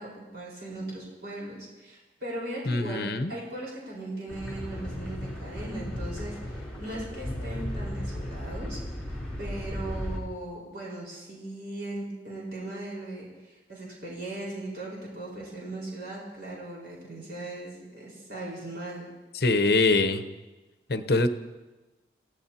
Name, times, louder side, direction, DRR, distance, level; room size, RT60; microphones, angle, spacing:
voice 1, 0.0-19.1, right 1 dB, 60° right, -5 dB, 4.5 m, -38 dB
voice 2, 2.7-3.3 19.3-20.2 20.9-21.3, left 3 dB, 60° left, 10 dB, 0.8 m, -23 dB
sound 1, 4.3-10.2, equal, 5° left, 3.6 m, -35 dB
26.5 x 16.0 x 2.9 m, 1.2 s
head